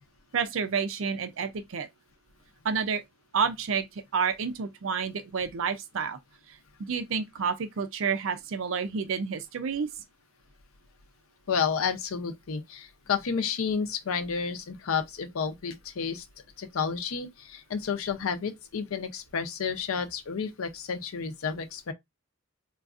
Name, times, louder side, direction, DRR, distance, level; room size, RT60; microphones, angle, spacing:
voice 1, 0.3-1.9 2.6-3.0 3.3-6.2 6.5-9.9, right 6 dB, 70° right, 0.5 m, -30 dB
voice 2, 11.5-16.2 16.6-21.9, left 6 dB, 90° left, 0.5 m, -31 dB
3.8 x 2.3 x 2.4 m
head